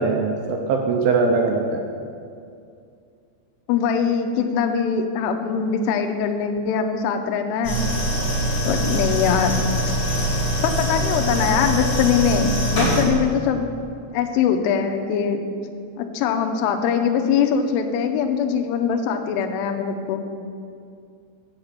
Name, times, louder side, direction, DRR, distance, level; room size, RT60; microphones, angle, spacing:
voice 1, 0.0-1.8, right 4 dB, 80° right, 3 dB, 2.8 m, -21 dB
voice 2, 3.7-7.8 8.7-9.6 10.6-13.7 14.1-15.4 16.0-20.2, left 7 dB, 80° left, 5 dB, 3.0 m, -22 dB
sound 1, 7.6-13.0, equal, 30° left, 2.5 m, -23 dB
8.7 x 6.5 x 7.4 m, 2.4 s
omnidirectional pair, 5.9 m